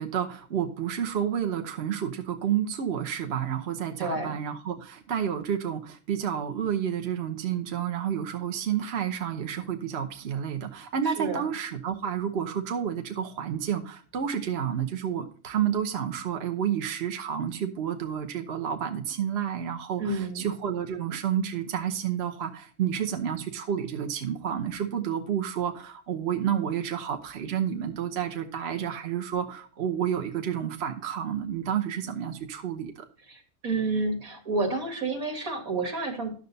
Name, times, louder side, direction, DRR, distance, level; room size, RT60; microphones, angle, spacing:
voice 1, 0.0-32.9, right 9 dB, 50° right, 4 dB, 1.2 m, -30 dB
voice 2, 4.0-4.4 11.0-11.5 20.0-20.5 33.3-36.3, right 3 dB, 85° right, 3 dB, 2.5 m, -30 dB
11.0 x 6.7 x 4.0 m, 0.43 s
omnidirectional pair, 1.5 m